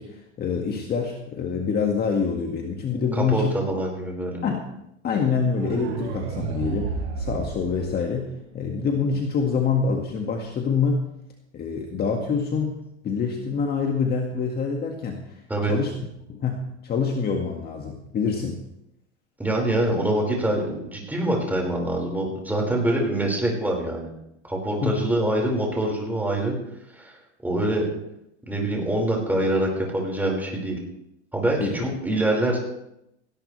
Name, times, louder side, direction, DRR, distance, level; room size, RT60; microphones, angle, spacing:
voice 1, 0.0-3.5 4.4-4.6 5.0-11.1 11.5-12.8 13.0-15.9 16.3-18.6 24.8-25.0 31.6-31.7, left 5 dB, 25° left, 1 dB, 1.9 m, -26 dB
voice 2, 3.1-4.4 15.5-15.7 19.4-24.1 24.4-26.5 26.9-27.2 27.4-27.8 28.5-30.8 31.3-32.6, right 1 dB, 5° right, -1 dB, 5.1 m, -25 dB
sound 1, 5.5-8.5, right 5 dB, 65° right, 4.2 m, -32 dB
18.5 x 17.0 x 3.4 m, 0.80 s
supercardioid pair, 135°, 35 cm